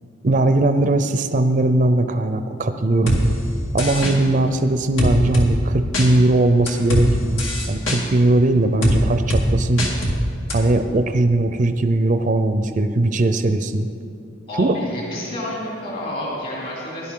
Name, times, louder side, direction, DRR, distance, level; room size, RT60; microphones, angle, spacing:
voice 1, 0.2-3.2 3.7-9.9 10.5-13.9 14.6-14.7, right 2 dB, 40° right, 8 dB, 0.5 m, -19 dB
sound 1, 3.1-3.2 3.8-4.1 5.0-5.5 5.9-6.1 6.7-7.1 7.4-8.0 8.8-9.0 9.3-9.4 9.8-10.2 10.5-10.6, equal, 85° left, 2.2 m, -20 dB
voice 2, 14.5-17.1, left 1 dB, 50° left, -5 dB, 3.0 m, -29 dB
17.0 x 11.0 x 3.8 m, 2.6 s
head